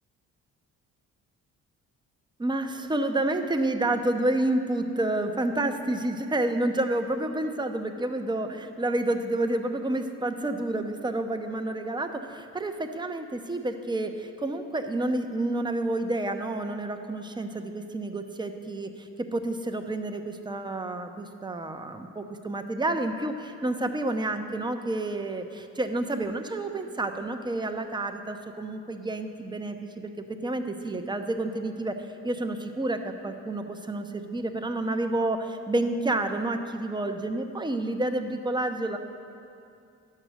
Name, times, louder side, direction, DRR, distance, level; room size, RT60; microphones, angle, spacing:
voice 1, 2.4-32.0 32.2-39.0, right 2 dB, 15° right, 6 dB, 0.8 m, -29 dB
11.0 x 6.7 x 6.3 m, 2.5 s
cardioid pair, 90°, 30 cm